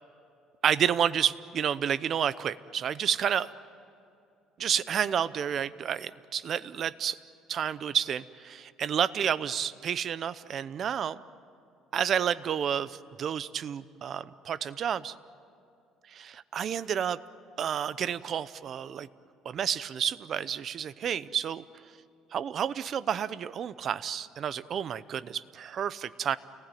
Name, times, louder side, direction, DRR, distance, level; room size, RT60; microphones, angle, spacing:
voice 1, 0.6-3.5 4.6-7.2 7.5-11.2 11.9-15.1 16.1-17.2 17.6-19.1 19.4-21.6 22.3-26.4, right 8 dB, 40° right, 15 dB, 0.7 m, -30 dB
29.5 x 19.5 x 9.2 m, 2.5 s
cardioid pair, 150°, 0 cm